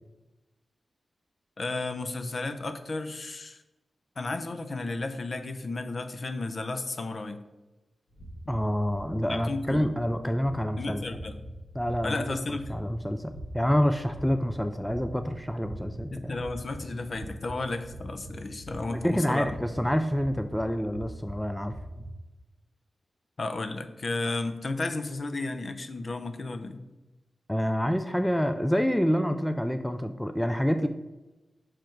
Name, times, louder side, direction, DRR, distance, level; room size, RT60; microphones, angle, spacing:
voice 1, 1.6-3.6 4.2-7.4 9.3-9.9 10.8-11.4 12.0-12.6 16.1-19.5 23.4-26.8, left 2 dB, 45° left, 8 dB, 0.6 m, -33 dB
sound 1, 8.1-22.1, right 1 dB, 80° left, 2.0 m, -43 dB
voice 2, 8.5-11.0 11.7-16.4 18.9-21.7 27.5-30.9, equal, 5° left, 8 dB, 0.3 m, -27 dB
5.8 x 5.0 x 4.5 m, 1.1 s
wide cardioid pair, 120°, 0 cm